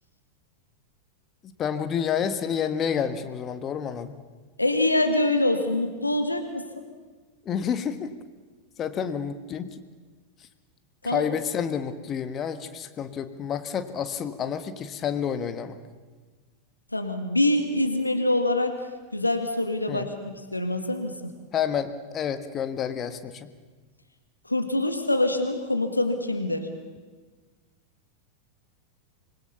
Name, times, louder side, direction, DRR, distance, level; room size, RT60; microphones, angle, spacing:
voice 1, 1.6-4.2 7.4-8.1 8.8-9.8 11.0-15.8 19.9-20.1 21.5-23.5, left 8 dB, 30° left, 10 dB, 1.6 m, -29 dB
voice 2, 4.6-6.8 11.0-11.3 16.9-18.8 19.1-21.3 24.5-26.7, left 1 dB, 85° left, 6 dB, 1.9 m, -25 dB
26.5 x 20.5 x 7.0 m, 1.4 s
figure-of-eight pair, 90°, 0 cm